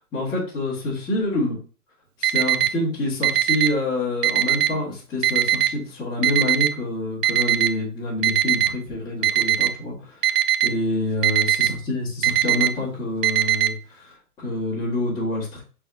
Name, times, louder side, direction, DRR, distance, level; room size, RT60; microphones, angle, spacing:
voice 1, 0.1-1.6 2.2-10.4 10.6-15.6, left 2 dB, 10° left, -9 dB, 1.2 m, -27 dB
Alarm, 2.2-2.7 3.2-3.7 4.2-4.7 5.2-5.7 6.2-6.7 7.2-7.7 8.2-8.7 9.2-9.7 10.2-10.7 11.2-11.7 12.2-12.7 13.2-13.7, right 12 dB, 85° right, 0.7 m, -19 dB
6.0 x 3.5 x 2.5 m, 0.39 s
hypercardioid pair, 160°, 47 cm